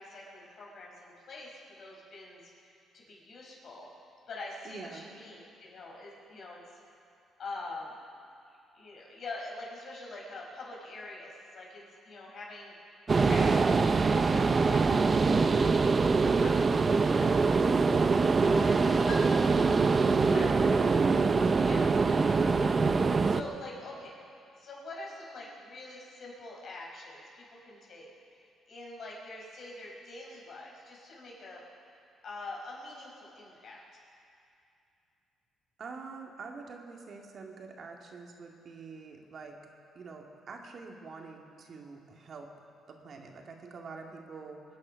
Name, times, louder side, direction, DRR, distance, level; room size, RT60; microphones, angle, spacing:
voice 1, 0.0-2.4 2.9-3.9 4.3-6.6 7.4-7.9 8.7-17.4 17.9-19.1 19.5-20.9 21.5-24.1 24.6-28.1 28.3-31.6 32.2-33.8, left 2 dB, 60° left, -3 dB, 5.1 m, -45 dB
voice 2, 4.6-5.1 20.2-20.7 35.8-39.6 39.9-42.5 42.9-44.6, right 4 dB, 55° right, 1 dB, 2.3 m, -45 dB
sound 1, 13.1-23.4, right 4 dB, 35° right, 0.7 m, -24 dB
24.0 x 9.7 x 5.8 m, 2.6 s
supercardioid pair, 75°, 0 cm